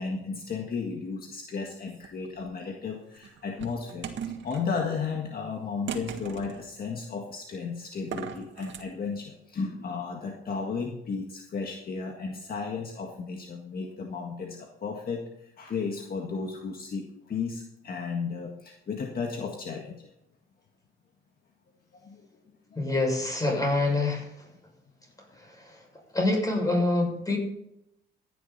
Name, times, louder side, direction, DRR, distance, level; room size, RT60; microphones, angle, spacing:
voice 1, 0.0-15.2 15.6-20.1 22.0-22.2 22.7-22.8, left 5 dB, 50° left, 2 dB, 1.8 m, -34 dB
sound 1, 1.9-2.4 3.2-4.6 5.9-6.6 8.0-8.8, right 7 dB, 70° right, 1.8 m, -38 dB
voice 2, 22.8-24.3 25.7-25.8 26.1-27.4, left 2 dB, 15° left, 1 dB, 6.4 m, -25 dB
15.0 x 10.5 x 4.2 m, 0.80 s
cardioid pair, 90°, 20 cm